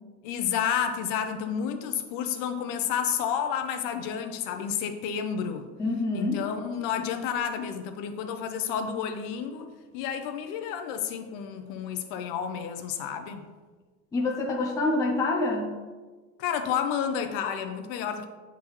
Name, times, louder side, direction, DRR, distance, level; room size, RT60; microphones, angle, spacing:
voice 1, 0.2-5.7 6.1-9.7 9.9-13.4 16.4-18.3, left 8 dB, 60° left, 0.7 m, -30 dB
voice 2, 5.8-6.4 14.1-15.7, left 2 dB, 10° left, 0.4 m, -26 dB
8.3 x 3.8 x 3.0 m
cardioid pair, 165°, 36 cm